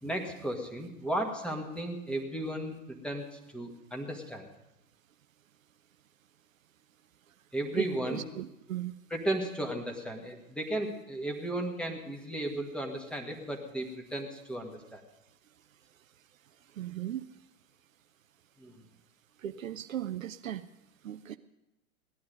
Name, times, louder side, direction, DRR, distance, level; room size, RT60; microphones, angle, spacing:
voice 1, 0.0-4.5 7.5-8.2 9.1-15.0 18.6-18.8, right 1 dB, ahead, 2 dB, 1.8 m, -35 dB
voice 2, 7.7-8.9 16.8-17.3 19.4-20.6 21.0-21.4, right 11 dB, 65° right, 11 dB, 0.7 m, -37 dB
17.5 x 11.5 x 5.3 m, 0.93 s
figure-of-eight pair, 100°, 43 cm